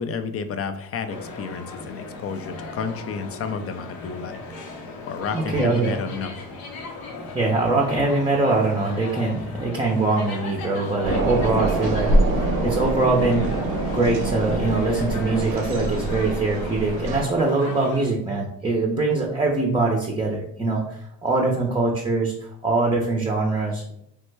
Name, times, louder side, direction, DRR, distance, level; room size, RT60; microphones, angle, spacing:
voice 1, 0.0-4.4 5.1-6.4, left 5 dB, 40° left, 9 dB, 0.4 m, -31 dB
sound 1, 1.1-18.1, left 3 dB, 75° left, 0.7 m, -37 dB
voice 2, 5.3-6.0 7.3-13.5 13.9-23.9, right 3 dB, 15° right, 0 dB, 0.5 m, -23 dB
sound 2, 11.0-17.2, right 2 dB, 80° right, 0.7 m, -24 dB
3.1 x 2.1 x 3.2 m, 0.73 s
supercardioid pair, 75°, 37 cm